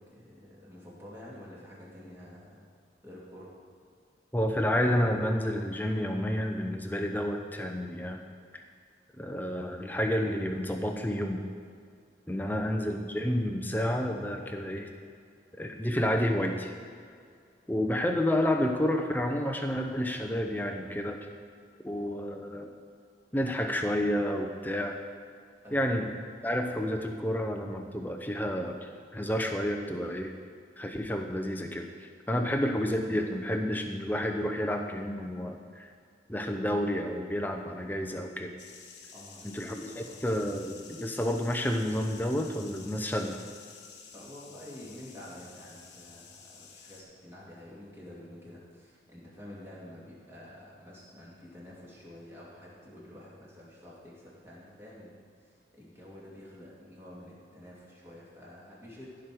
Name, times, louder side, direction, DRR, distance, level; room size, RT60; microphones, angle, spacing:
voice 1, 0.1-2.7 3.0-3.5 12.3-12.7 25.6-25.9 39.1-40.2 44.1-59.1, left 1 dB, 15° right, -6 dB, 2.4 m, -49 dB
voice 2, 4.3-8.2 8.5-8.6 9.2-11.4 12.3-14.9 15.6-16.7 17.7-21.3 21.8-22.7 23.3-25.0 25.7-26.1 26.4-30.3 30.8-35.9 36.3-38.5 39.4-43.4, equal, 10° left, 4 dB, 0.7 m, -30 dB
sound 1, 38.6-47.0, left 5 dB, 70° left, 1.2 m, -51 dB
15.0 x 5.1 x 6.1 m, 2.2 s
head